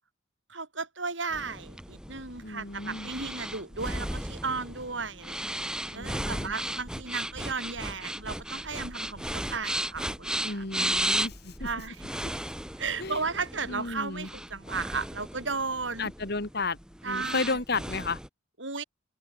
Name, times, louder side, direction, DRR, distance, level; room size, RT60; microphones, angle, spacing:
voice 1, 0.5-10.6 11.6-12.1 12.8-16.1 17.0-17.6 18.6-18.8, right 4 dB, 70° right, 7.2 m, -35 dB
sound 1, 1.3-18.3, right 1 dB, 5° right, 2.1 m, -35 dB
voice 2, 2.4-3.1 5.9-6.5 10.4-11.7 13.0-13.2 13.7-14.3 16.0-16.8 17.0-18.2, left 3 dB, 55° left, 2.6 m, -33 dB
head